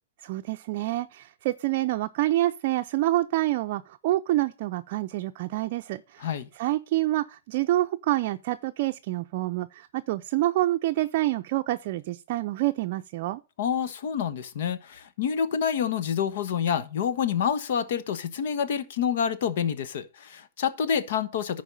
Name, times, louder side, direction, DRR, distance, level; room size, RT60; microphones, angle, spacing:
voice 1, 0.2-6.3 6.6-13.4, right 16 dB, 50° right, 0.5 m, -27 dB
voice 2, 13.6-21.6, left 7 dB, 65° left, 1.1 m, -28 dB
11.0 x 4.6 x 5.3 m
hypercardioid pair, 140°, 0 cm